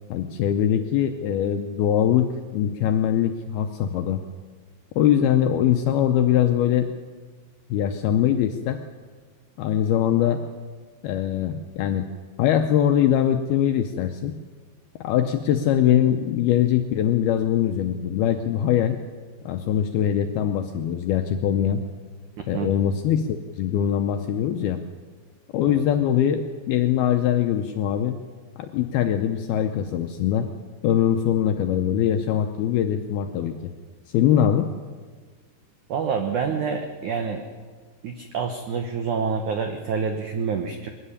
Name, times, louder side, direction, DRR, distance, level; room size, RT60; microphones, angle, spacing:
voice 1, 0.1-4.2 5.0-6.9 7.7-8.8 9.6-10.4 11.0-12.0 12.4-14.3 15.0-19.0 19.5-21.8 22.5-24.8 25.5-26.4 26.7-28.2 28.6-30.5 30.8-33.6 34.1-34.7, left 10 dB, 80° left, 6 dB, 2.3 m, -22 dB
voice 2, 35.9-37.4 38.0-40.9, right 6 dB, 85° right, 5 dB, 1.7 m, -27 dB
21.0 x 13.5 x 9.9 m, 1.5 s
omnidirectional pair, 5.3 m